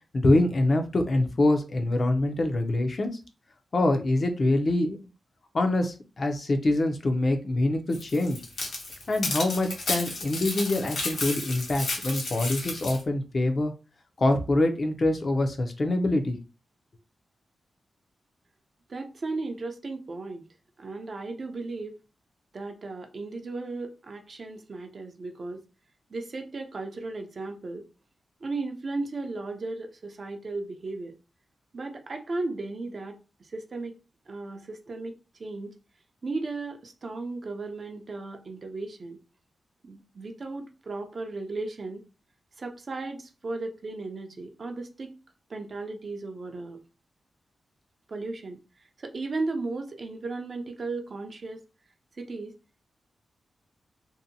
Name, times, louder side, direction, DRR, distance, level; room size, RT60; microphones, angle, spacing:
voice 1, 0.1-3.1 3.7-5.0 5.5-8.4 9.1-13.7 14.2-16.4, left 2 dB, 45° left, 0.5 m, -25 dB
sound 1, 7.9-13.0, left 2 dB, 75° left, 0.8 m, -32 dB
voice 2, 18.9-20.5 20.8-21.9 22.5-25.6 26.1-27.8 28.4-31.2 31.7-33.2 33.5-34.0 34.3-35.7 36.2-39.2 39.8-42.0 42.6-45.1 45.5-46.8 48.1-48.6 49.0-51.6 52.2-52.5, right 3 dB, 50° right, 0.5 m, -35 dB
2.6 x 2.1 x 2.6 m
wide cardioid pair, 100°, 0 cm